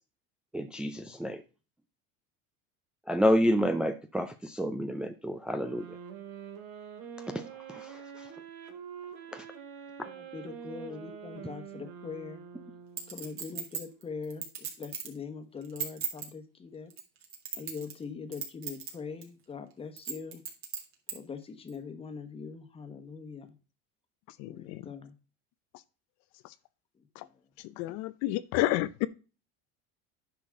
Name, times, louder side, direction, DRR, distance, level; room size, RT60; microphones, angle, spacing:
voice 1, 0.5-1.4 3.1-5.8 7.7-7.9 9.3-9.4, equal, 5° right, 0.4 m, -28 dB
sound 1, 5.6-13.3, right 7 dB, 60° right, 2.2 m, -45 dB
voice 2, 10.1-12.4 13.1-14.4 14.8-16.9 17.6-20.4 21.1-23.5 24.4-25.1, left 5 dB, 20° left, 1.3 m, -42 dB
Chink clink, 13.0-15.2 15.6-16.3 16.9-18.0 18.3-18.9 19.2-19.3 20.0-21.2 21.7-21.8, right 7 dB, 45° right, 2.8 m, -36 dB
voice 3, 24.4-24.8 27.2-27.3 27.8-29.1, left 17 dB, 60° left, 0.6 m, -30 dB
10.0 x 6.1 x 3.7 m
cardioid pair, 135°, 29 cm